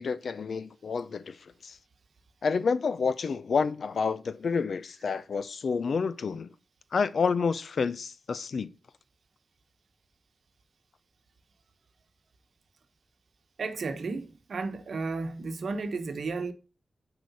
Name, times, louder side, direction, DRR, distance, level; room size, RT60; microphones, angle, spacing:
voice 1, 0.0-1.8 2.4-6.5 6.9-8.7, left 5 dB, 75° left, 0.5 m, -29 dB
voice 2, 13.6-16.5, right 4 dB, 75° right, 1.0 m, -33 dB
7.9 x 4.9 x 4.1 m
wide cardioid pair, 135°, 0 cm